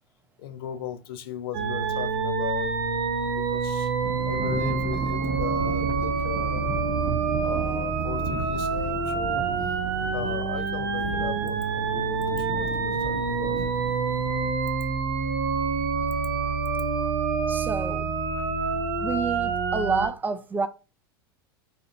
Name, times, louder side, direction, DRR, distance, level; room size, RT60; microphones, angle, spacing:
voice 1, 0.4-3.0 3.3-3.9 4.3-6.7 7.4-9.5 10.1-13.7 18.7-18.9, left 9 dB, 65° left, 0.5 m, -37 dB
sound 1, 1.5-20.1, right 5 dB, 70° right, 0.6 m, -27 dB
Thunder / Rain, 4.0-14.5, right 3 dB, 30° right, 0.7 m, -36 dB
voice 2, 17.5-18.1 19.0-20.7, right 4 dB, 15° right, 0.3 m, -28 dB
2.7 x 2.1 x 2.4 m
hypercardioid pair, 100°, 13 cm